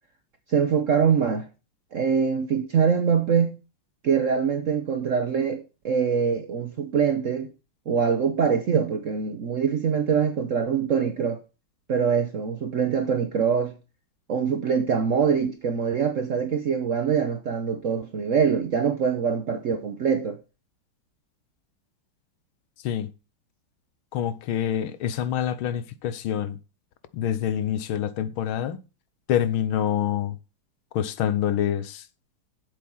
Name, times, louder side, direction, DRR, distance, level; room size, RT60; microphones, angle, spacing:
voice 1, 0.5-1.5 1.9-3.6 4.0-7.5 7.9-11.4 11.9-13.8 14.3-20.4, right 6 dB, 65° right, 0.8 m, -24 dB
voice 2, 24.1-26.6 27.1-28.8 29.3-30.4 30.9-32.0, left 10 dB, 80° left, 1.6 m, -26 dB
7.7 x 7.4 x 5.4 m
omnidirectional pair, 2.3 m